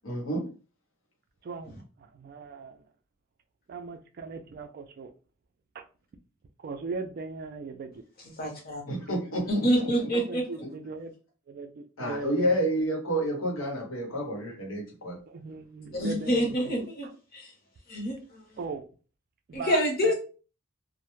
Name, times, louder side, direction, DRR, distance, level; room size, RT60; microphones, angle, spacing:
voice 1, 0.0-0.4 8.9-9.7 10.6-10.7 12.0-15.2, equal, 90° left, 0.8 m, -29 dB
voice 2, 1.4-2.8 3.7-5.1 5.7-5.8 6.6-8.0 9.9-11.1 11.5-12.8 15.3-17.1 18.6-18.9 19.5-20.1, right 4 dB, 45° right, 0.3 m, -39 dB
voice 3, 8.4-8.8 9.5-10.4 15.9-17.1 17.3-17.5 17.9-18.4 19.5-20.1, equal, 45° left, 0.8 m, -27 dB
2.1 x 2.0 x 3.0 m
head